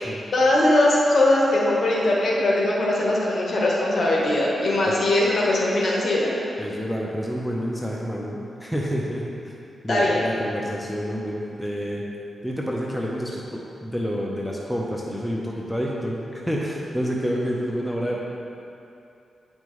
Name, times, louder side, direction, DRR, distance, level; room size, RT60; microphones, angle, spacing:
voice 1, 0.3-6.4 9.9-10.2, left 1 dB, 55° left, -4 dB, 1.3 m, -20 dB
voice 2, 6.6-9.5 9.8-12.0 12.4-16.2 16.5-18.2, equal, ahead, -3 dB, 0.8 m, -28 dB
8.9 x 5.3 x 3.2 m, 2.7 s
cardioid pair, 80°, 0 cm